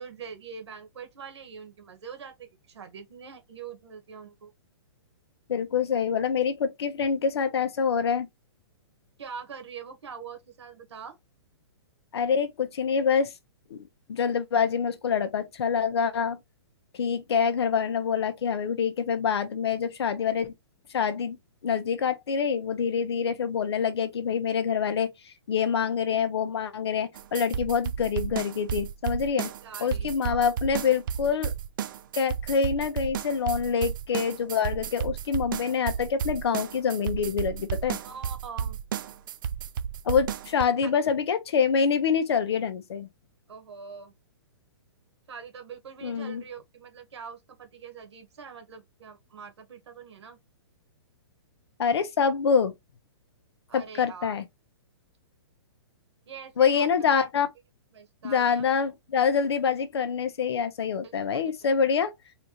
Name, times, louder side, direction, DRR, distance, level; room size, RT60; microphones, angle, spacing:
voice 1, 0.0-4.5 9.2-11.2 29.6-30.4 38.0-38.8 40.8-40.9 43.5-44.1 45.3-50.4 53.7-54.3 56.3-56.9 57.9-58.7 61.0-61.2 61.6-61.7, right 6 dB, 80° right, 1.6 m, -43 dB
voice 2, 5.5-8.3 12.1-13.3 13.7-16.4 16.9-20.5 20.9-21.4 21.6-29.5 29.8-31.5 32.1-38.0 40.0-43.1 46.0-46.4 51.8-52.7 53.7-54.4 56.6-57.5 58.2-62.1, left 6 dB, 70° left, 1.0 m, -26 dB
sound 1, 27.2-40.6, right 8 dB, 50° right, 0.4 m, -32 dB
4.3 x 2.7 x 3.0 m
hypercardioid pair, 165°, 14 cm